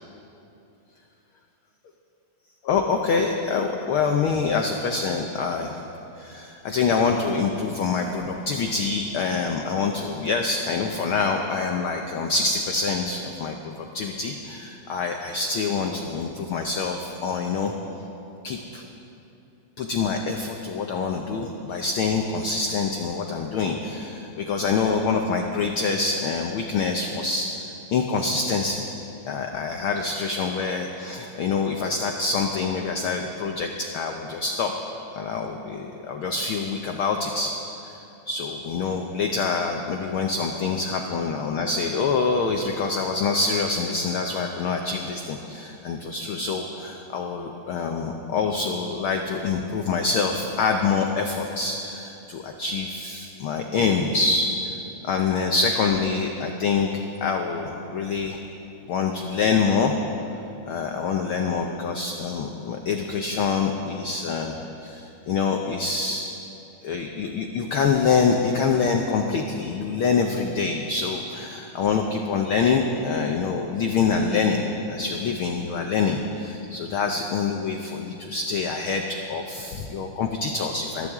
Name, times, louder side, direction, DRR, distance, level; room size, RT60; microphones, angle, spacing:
voice 1, 2.6-5.8 6.2-17.7 18.4-18.8 19.8-28.8 29.3-34.7 35.1-37.5 37.8-38.0 38.3-54.5 55.0-56.9 57.2-58.4 58.9-60.0 60.7-66.3 66.8-81.1, left 4 dB, 85° left, 3 dB, 1.1 m, -25 dB
22.5 x 14.0 x 3.6 m, 2.9 s
omnidirectional pair, 3.4 m